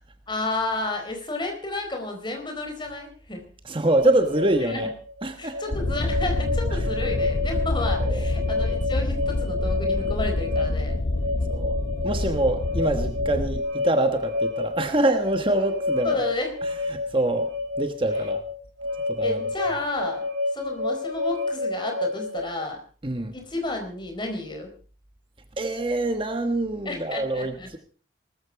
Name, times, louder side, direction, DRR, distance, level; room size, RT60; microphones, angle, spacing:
voice 1, 0.3-3.4 4.6-4.9 5.4-11.0 16.0-16.6 19.2-20.2 20.5-22.8 23.3-24.7 26.8-27.7, left 2 dB, 25° left, 3 dB, 4.3 m, -31 dB
voice 2, 3.6-4.9 5.2-5.6 6.7-6.8 8.0-8.2 11.5-11.8 12.0-16.2 16.9-17.5 17.8-18.4 19.1-19.4 23.0-23.3 25.6-27.8, right 2 dB, 25° right, 7 dB, 1.2 m, -25 dB
sound 1, 3.9-22.6, left 2 dB, 80° right, 4.1 m, -30 dB
sound 2, 5.7-13.6, left 2 dB, 50° left, 0.7 m, -27 dB
19.0 x 14.0 x 4.7 m, 0.41 s
head